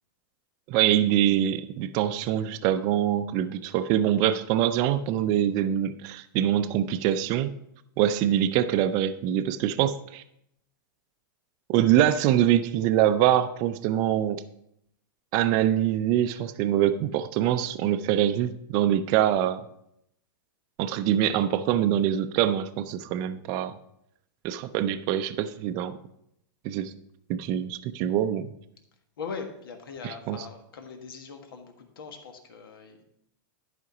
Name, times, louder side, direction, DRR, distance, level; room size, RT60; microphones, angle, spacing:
voice 1, 0.7-7.5 8.0-10.2 11.7-14.4 15.3-19.6 20.8-23.8 24.4-26.0 26.6-26.9 27.3-28.5 30.0-30.4, right 11 dB, 35° right, 9 dB, 0.4 m, -24 dB
voice 2, 29.2-33.0, left 5 dB, 90° left, 5 dB, 1.5 m, -40 dB
11.0 x 5.1 x 4.9 m, 0.75 s
supercardioid pair, 155°, 12 cm